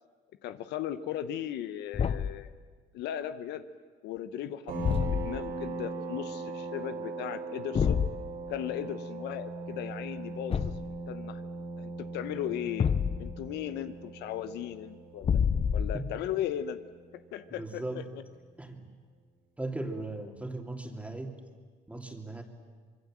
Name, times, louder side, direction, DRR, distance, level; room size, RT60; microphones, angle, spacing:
voice 1, 0.4-2.5 2.9-3.7 4.0-8.0 8.5-11.4 11.8-12.9 13.2-15.4 15.7-16.8 17.1-18.0, left 11 dB, 80° left, 11 dB, 1.1 m, -37 dB
Thump thud, 1.9-2.5 4.8-5.5 7.8-8.2 10.5-11.0 12.8-13.4 15.2-16.2, left 7 dB, 35° left, 0.7 m, -28 dB
sound 1, 4.7-17.9, right 3 dB, 75° right, 6.2 m, -40 dB
voice 2, 17.5-18.0 18.6-18.8 19.6-21.4 21.9-22.4, right 2 dB, 10° right, 3 dB, 2.8 m, -37 dB
25.0 x 22.5 x 7.6 m, 1.5 s
cardioid pair, 110°, 17 cm